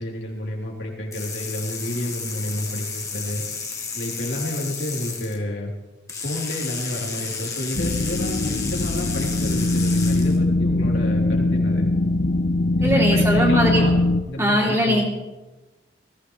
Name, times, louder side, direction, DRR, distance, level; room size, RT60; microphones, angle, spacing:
voice 1, 0.0-3.4 3.9-5.7 6.2-11.9 12.8-13.9 14.3-15.0, left 1 dB, 80° left, -2 dB, 3.3 m, -30 dB
sound 1, 1.1-5.4 6.1-10.4, left 5 dB, 15° left, 1.4 m, -32 dB
sound 2, 7.8-14.2, left 2 dB, 50° left, 0.7 m, -21 dB
voice 2, 12.8-13.8 14.4-15.0, equal, 15° right, -4 dB, 3.0 m, -20 dB
19.5 x 15.5 x 3.2 m, 1.1 s
head